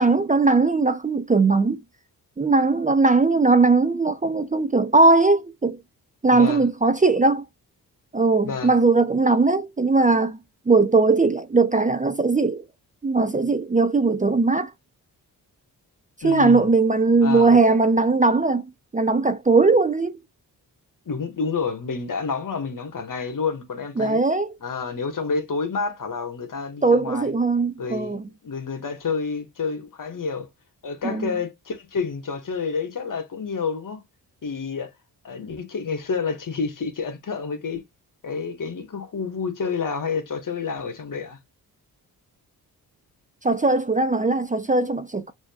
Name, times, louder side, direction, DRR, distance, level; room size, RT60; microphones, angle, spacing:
voice 1, 0.0-1.8 2.4-5.8 6.2-7.4 8.1-10.4 10.7-12.6 13.0-14.7 16.2-20.2 24.0-24.5 26.8-28.2 31.0-31.3 43.4-45.3, right 3 dB, 20° right, 0.6 m, -19 dB
voice 2, 6.3-6.6 8.4-8.7 16.2-16.7 17.2-17.6 21.0-24.2 24.6-27.3 27.8-30.5 30.8-34.0 34.4-34.9 35.2-37.8 38.2-41.4, left 5 dB, 55° left, 1.6 m, -29 dB
6.1 x 2.8 x 2.3 m
cardioid pair, 65°, 38 cm